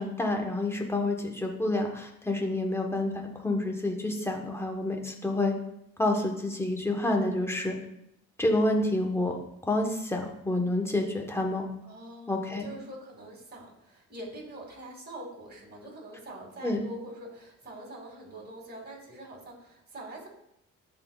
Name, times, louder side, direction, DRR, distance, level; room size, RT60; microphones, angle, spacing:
voice 1, 0.0-5.5 6.0-7.7 8.4-9.4 9.6-11.6 12.3-12.7 16.6-16.8, left 2 dB, 10° left, 2 dB, 1.2 m, -28 dB
voice 2, 11.8-20.3, right 1 dB, 35° right, -1 dB, 2.3 m, -44 dB
11.0 x 4.0 x 2.4 m, 0.78 s
cardioid pair, 90°, 30 cm